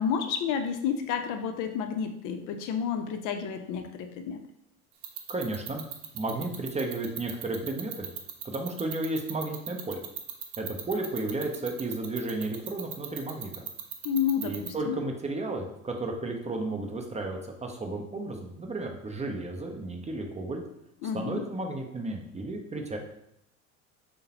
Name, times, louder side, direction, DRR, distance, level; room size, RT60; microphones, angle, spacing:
voice 1, 0.0-4.4 14.0-15.0 21.0-21.4, left 7 dB, 45° left, 7 dB, 0.5 m, -30 dB
sound 1, 5.0-14.7, right 11 dB, 80° right, 0.7 m, -36 dB
voice 2, 5.3-5.8 6.1-8.1 8.4-10.0 10.6-13.6 14.4-20.6 21.1-23.0, right 2 dB, 15° right, 2 dB, 0.5 m, -33 dB
6.4 x 2.1 x 2.8 m, 0.76 s
hypercardioid pair, 70°, 43 cm